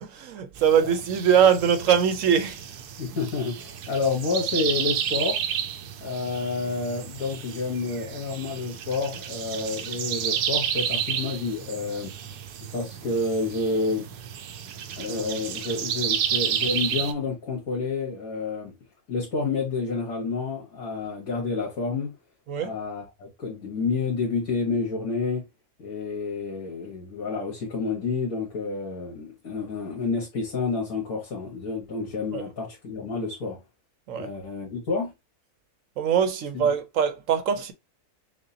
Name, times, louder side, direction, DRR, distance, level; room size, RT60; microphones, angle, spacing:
voice 1, 0.0-2.6 22.5-22.8 32.3-32.4 34.1-34.3 36.0-37.7, right 8 dB, 65° right, 1.0 m, -22 dB
sound 1, 0.6-17.1, right 9 dB, 90° right, 1.2 m, -31 dB
voice 2, 3.0-5.4 6.0-12.1 12.7-14.1 15.0-18.7 19.1-22.1 22.6-25.4 25.8-33.6 34.1-35.1 36.5-36.7, left 4 dB, 65° left, 1.7 m, -29 dB
6.2 x 2.3 x 2.7 m
omnidirectional pair, 1.6 m